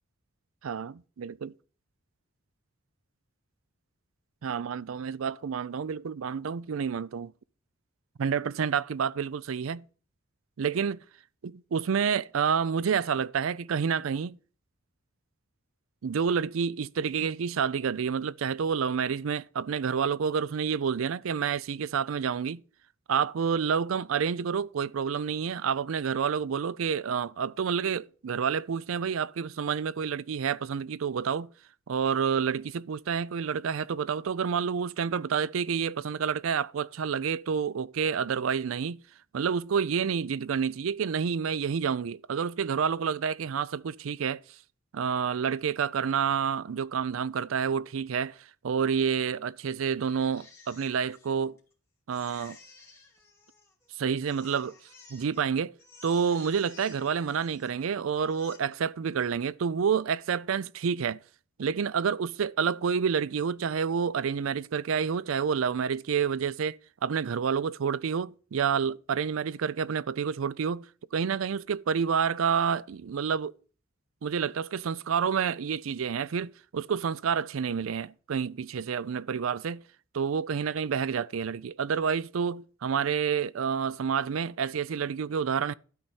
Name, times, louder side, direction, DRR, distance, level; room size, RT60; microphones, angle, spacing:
voice 1, 0.6-1.5 4.4-7.3 8.2-9.8 10.6-11.0 11.4-14.4 16.0-22.6 23.1-31.5 31.9-39.0 39.3-44.6 44.9-51.6 52.1-52.6 54.0-54.7 55.1-55.7 56.0-61.2 61.6-73.5 74.2-79.8 80.1-85.7, right 6 dB, 75° right, 0.4 m, -29 dB
Crying sobbing, 50.0-51.7 52.1-53.9 54.2-55.5 55.8-57.9 58.2-58.6, left 4 dB, 15° left, 2.4 m, -53 dB
12.0 x 4.2 x 7.8 m
head